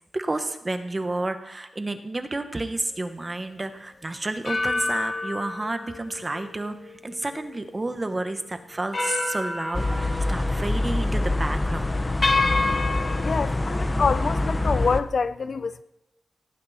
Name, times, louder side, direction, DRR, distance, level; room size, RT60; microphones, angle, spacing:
voice 1, 0.1-12.0 12.6-12.9, right 2 dB, 20° right, 1.2 m, -31 dB
sound 1, 2.9-3.1 4.4-7.9 8.3-8.4 8.9-10.8 11.1-11.4 12.2-13.5, left 3 dB, 35° left, 1.8 m, -29 dB
sound 2, 9.7-15.0, left 2 dB, 20° left, 0.7 m, -25 dB
voice 2, 13.2-15.8, left 5 dB, 50° left, 0.5 m, -26 dB
18.0 x 17.5 x 4.3 m
wide cardioid pair, 150°, 0 cm